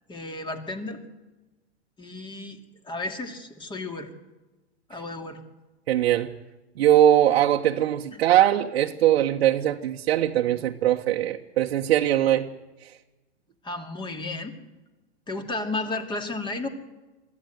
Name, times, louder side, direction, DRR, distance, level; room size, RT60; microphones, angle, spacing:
voice 1, 0.1-1.0 2.0-2.6 2.8-4.1 4.9-5.4 8.1-8.2 13.6-14.6 15.3-16.7, left 2 dB, 15° left, 7 dB, 2.5 m, -33 dB
voice 2, 5.9-6.3 6.8-12.5 12.8-12.9, right 12 dB, 65° right, 1 dB, 1.3 m, -21 dB
23.0 x 14.0 x 9.1 m, 1.1 s
hypercardioid pair, 130°, 33 cm